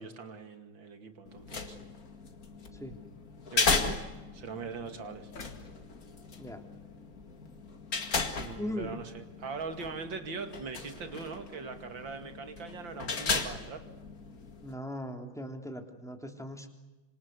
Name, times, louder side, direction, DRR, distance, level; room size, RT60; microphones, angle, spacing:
voice 1, 0.0-1.8 3.5-4.0 4.3-5.3 8.4-13.9, right 5 dB, 75° right, 8 dB, 3.0 m, -41 dB
sound 1, 1.3-14.7, left 4 dB, 50° left, 2.5 m, -36 dB
sound 2, 5.4-7.5 8.0-8.1, left 3 dB, 75° left, 3.2 m, -53 dB
voice 2, 8.6-8.9 14.6-16.7, equal, ahead, 4 dB, 3.1 m, -39 dB
26.5 x 26.0 x 8.2 m, 1.1 s
omnidirectional pair, 2.1 m